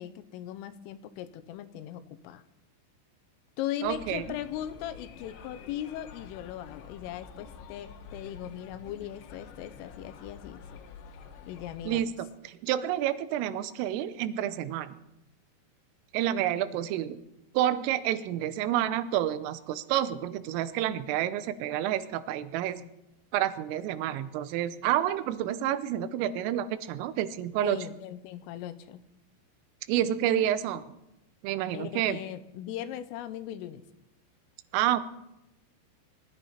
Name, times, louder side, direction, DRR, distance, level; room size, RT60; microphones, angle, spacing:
voice 1, 0.0-2.4 3.6-10.6 11.5-12.1 22.8-22.9 27.6-29.0 31.7-33.8, left 11 dB, 85° left, 11 dB, 3.4 m, -39 dB
sound 1, 3.8-12.0, left 5 dB, 70° left, 3.4 m, -48 dB
voice 2, 3.8-4.2 11.9-12.1 12.4-14.9 16.1-17.2 17.5-22.8 23.3-27.8 29.9-30.8 31.4-32.2 34.7-35.0, right 11 dB, 85° right, 13 dB, 3.4 m, -29 dB
22.5 x 14.0 x 4.3 m, 0.90 s
omnidirectional pair, 5.8 m